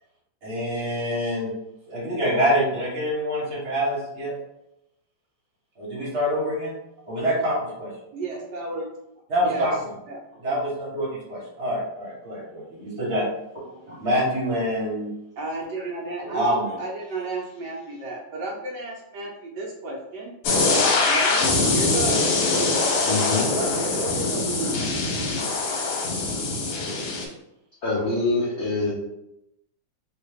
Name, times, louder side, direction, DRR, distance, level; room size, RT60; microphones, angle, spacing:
voice 1, 0.4-1.5 1.9-4.3 5.8-6.7 7.1-7.9 9.3-9.7 10.4-13.2 13.5-15.1 16.2-16.8 22.1-22.2, equal, 45° right, -5 dB, 1.2 m, -26 dB
voice 2, 8.1-8.9 9.4-9.7 10.1-10.2 15.4-20.3 21.1-22.2 22.8-23.2 23.5-25.0, right 2 dB, 70° right, -1 dB, 1.2 m, -33 dB
sound 1, 20.4-27.2, left 3 dB, 85° left, 1.5 m, -23 dB
voice 3, 23.1-23.4 27.8-28.9, left 2 dB, 65° left, -5 dB, 0.6 m, -24 dB
2.9 x 2.8 x 3.3 m, 0.86 s
omnidirectional pair, 2.1 m